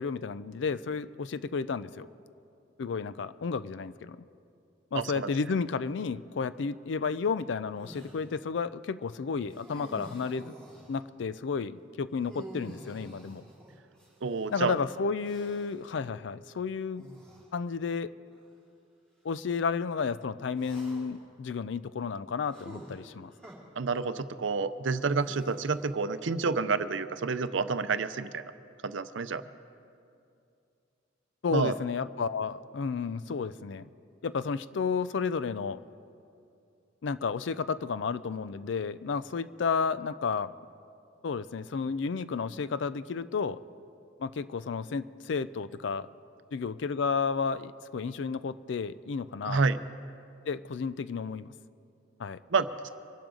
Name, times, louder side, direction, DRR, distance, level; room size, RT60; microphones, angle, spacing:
voice 1, 0.0-2.1 2.8-4.3 4.9-10.5 10.9-13.4 14.5-17.1 17.5-18.1 19.2-23.3 31.4-33.9 34.2-35.8 37.0-40.5 41.2-43.6 44.2-46.1 46.5-49.6 50.5-51.5 52.2-52.4, left 5 dB, 65° left, 15 dB, 0.4 m, -32 dB
voice 2, 4.9-5.3 14.2-14.7 23.8-28.4 28.8-29.4 31.5-31.7 49.4-49.8 52.5-52.9, right 4 dB, 75° right, 12 dB, 0.6 m, -29 dB
sound 1, 7.8-8.3 9.5-11.0 12.1-14.5 15.2-15.9 17.0-17.5 18.3-18.4 20.6-21.3 22.5-23.6 25.1-26.0, right 1 dB, 5° left, 3.2 m, -48 dB
24.0 x 12.0 x 3.8 m, 2.5 s
head